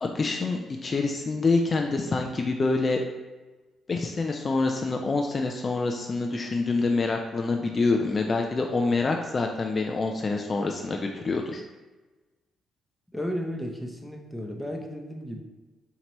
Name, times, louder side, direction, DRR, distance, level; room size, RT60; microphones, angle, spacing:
voice 1, 0.0-3.0 3.9-11.6, left 3 dB, 35° left, 2 dB, 0.3 m, -26 dB
voice 2, 13.1-15.4, equal, ahead, 1 dB, 0.7 m, -33 dB
4.5 x 2.8 x 2.9 m, 1.2 s
cardioid pair, 90°, 0 cm